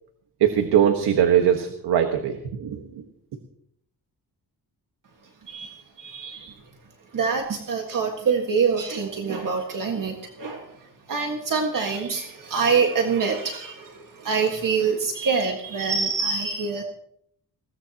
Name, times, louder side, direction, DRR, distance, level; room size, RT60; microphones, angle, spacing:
voice 1, 0.4-2.8, right 9 dB, 80° right, 5 dB, 1.5 m, -21 dB
voice 2, 5.5-6.5 7.1-10.7 11.1-16.8, right 5 dB, 55° right, 3 dB, 1.7 m, -25 dB
21.0 x 17.5 x 2.9 m, 0.69 s
cardioid pair, 125°, 40 cm